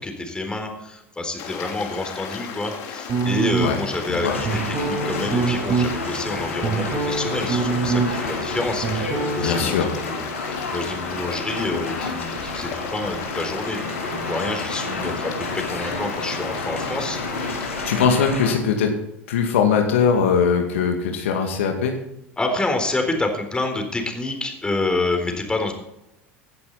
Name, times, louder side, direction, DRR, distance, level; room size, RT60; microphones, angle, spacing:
voice 1, 0.0-17.2 17.5-18.0 22.4-25.7, left 2 dB, 15° left, 4 dB, 3.9 m, -28 dB
Stream, 1.4-17.9, left 7 dB, 55° left, 3.1 m, -35 dB
sound 1, 3.1-3.9 4.4-5.9 6.3-8.3 8.5-9.6, right 5 dB, 40° right, 4.4 m, -24 dB
sound 2, 4.2-18.5, left 3 dB, 90° left, 2.8 m, -30 dB
voice 2, 9.4-9.9 17.8-18.9 19.3-21.9, left 6 dB, 70° left, 3 dB, 2.3 m, -20 dB
17.0 x 11.5 x 4.1 m, 0.84 s
figure-of-eight pair, 75°, 7 cm